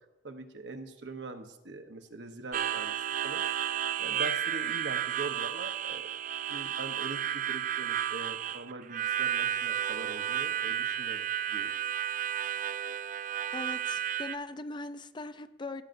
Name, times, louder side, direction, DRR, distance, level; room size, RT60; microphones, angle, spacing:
voice 1, 0.2-2.9 3.2-3.4 4.0-6.1 6.5-11.7, right 2 dB, 75° right, 7 dB, 0.9 m, -42 dB
Harmonica, 2.5-14.4, right 10 dB, 45° right, 0.3 m, -32 dB
voice 2, 13.5-15.8, left 2 dB, 25° left, 11 dB, 0.4 m, -40 dB
16.0 x 8.8 x 2.6 m, 0.98 s
head